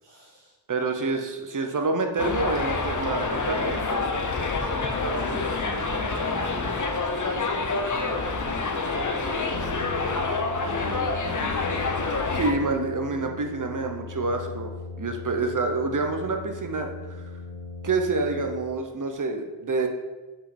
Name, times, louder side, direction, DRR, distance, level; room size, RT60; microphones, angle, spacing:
voice 1, 0.0-0.5 4.1-4.3 5.1-6.8 7.1-12.7, right 1 dB, 70° right, -4 dB, 2.2 m, -40 dB
voice 2, 0.7-4.1 12.3-14.7 15.0-17.2 17.8-19.9, right 3 dB, 45° right, 4 dB, 0.8 m, -27 dB
Subway metro underground, 2.2-12.5, left 3 dB, 45° left, 0.8 m, -27 dB
Brass instrument, 9.5-19.0, left 3 dB, 80° left, 1.2 m, -39 dB
5.6 x 5.3 x 4.3 m, 1.2 s
wide cardioid pair, 105°, 43 cm